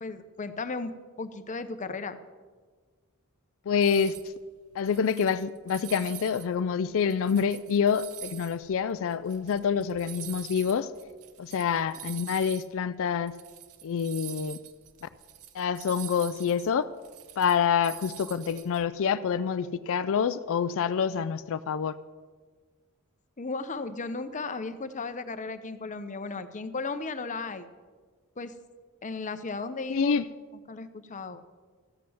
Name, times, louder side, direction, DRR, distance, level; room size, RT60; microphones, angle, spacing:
voice 1, 0.0-2.2 23.4-27.7 28.4-28.5 29.0-30.2 30.7-31.4, left 3 dB, 35° left, 10 dB, 0.7 m, -35 dB
voice 2, 3.7-4.1 4.8-10.9 11.4-13.3 13.8-14.6 15.0-15.1 15.5-16.9 17.4-22.0 29.9-30.3, left 6 dB, 65° left, 13 dB, 0.4 m, -27 dB
sound 1, 3.8-4.3 4.7-6.5 6.9-12.7 13.0-13.1 13.3-18.8, right 12 dB, 75° right, 0.9 m, -45 dB
14.0 x 7.5 x 7.0 m, 1.5 s
head